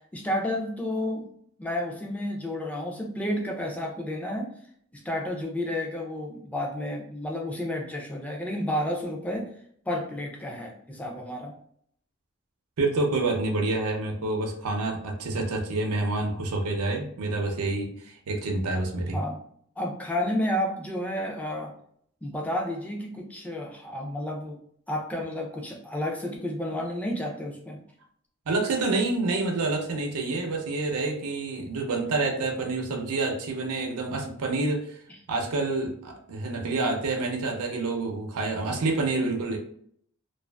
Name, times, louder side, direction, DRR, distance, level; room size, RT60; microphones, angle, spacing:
voice 1, 0.1-1.3 1.6-4.5 4.9-9.5 9.9-11.5 19.1-19.4 19.8-21.7 22.2-24.6 24.9-27.8 35.1-35.2, left 1 dB, 5° left, 0 dB, 0.3 m, -31 dB
voice 2, 12.8-19.2 28.5-35.0 35.3-39.6, right 2 dB, 90° right, 2 dB, 0.5 m, -28 dB
2.4 x 2.4 x 2.2 m, 0.64 s
head